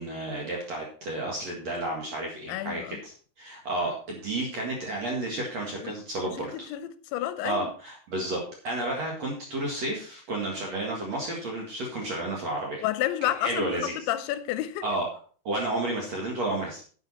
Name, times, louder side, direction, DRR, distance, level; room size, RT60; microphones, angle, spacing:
voice 1, 0.0-6.7 7.4-12.8 13.4-14.1 14.8-15.1 15.4-16.8, right 2 dB, 50° right, 2.2 m, -31 dB
voice 2, 2.5-3.0 5.8-5.9 6.4-7.7 12.8-14.8, left 13 dB, 80° left, 2.8 m, -30 dB
10.5 x 8.4 x 4.2 m
omnidirectional pair, 5.4 m